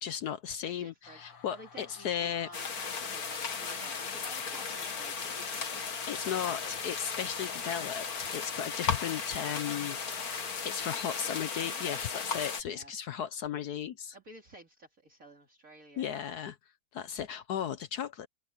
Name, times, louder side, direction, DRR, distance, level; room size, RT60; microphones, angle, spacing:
voice 1, 0.0-2.5 4.1-4.2 6.1-14.1 16.0-16.6 16.9-18.3, left 9 dB, 65° left, 1.0 m, -36 dB
voice 2, 0.6-6.0 6.6-6.7 11.2-12.0 12.7-12.9 14.1-16.1, right 1 dB, 40° right, 3.0 m, -53 dB
sound 1, 1.0-10.7, left 6 dB, 85° left, 3.3 m, -54 dB
sound 2, 2.5-12.6, left 5 dB, 45° left, 2.1 m, -36 dB
open air
omnidirectional pair, 2.4 m